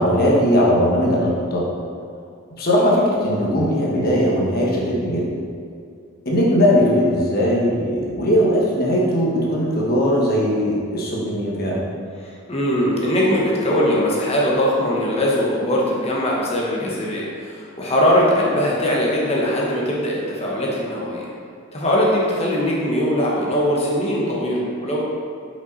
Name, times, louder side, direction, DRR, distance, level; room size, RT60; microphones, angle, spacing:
voice 1, 0.0-1.7 2.6-5.3 6.2-11.8, equal, 45° left, -4 dB, 1.3 m, -19 dB
voice 2, 12.2-21.2 21.7-25.0, equal, 30° left, -4 dB, 1.1 m, -21 dB
5.6 x 5.6 x 4.0 m, 2.3 s
head